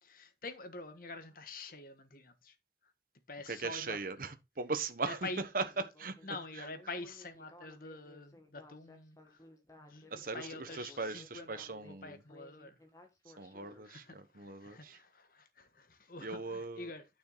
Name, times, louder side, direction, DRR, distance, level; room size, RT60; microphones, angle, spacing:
voice 1, 0.0-2.5 3.3-4.0 5.0-5.4 6.2-9.5 9.8-12.8 13.7-17.1, left 3 dB, 50° left, 1.4 m, -47 dB
voice 2, 3.5-5.2 5.5-5.6 6.0-6.2 6.6-6.7 10.1-12.2 13.4-15.0 16.2-16.9, right 4 dB, 50° right, 1.1 m, -39 dB
Speech synthesizer, 5.5-13.9, left 2 dB, 20° left, 1.6 m, -58 dB
9.3 x 6.5 x 4.0 m
head